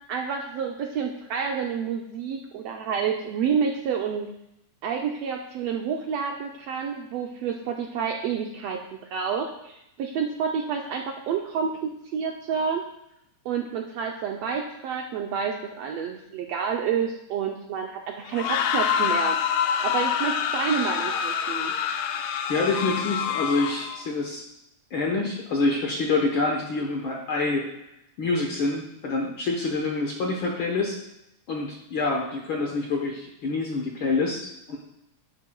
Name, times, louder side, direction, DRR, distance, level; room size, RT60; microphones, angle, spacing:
voice 1, 0.1-4.3 4.8-8.8 9.1-12.8 13.4-19.4 19.8-21.7, right 6 dB, 80° right, 2 dB, 1.5 m, -29 dB
sound 1, 18.3-24.0, left 8 dB, 80° left, 1.7 m, -26 dB
voice 2, 22.5-24.4 24.9-27.7 28.2-31.0 31.5-34.8, left 3 dB, 60° left, 0 dB, 1.4 m, -26 dB
10.5 x 9.9 x 2.3 m, 0.84 s
omnidirectional pair, 3.5 m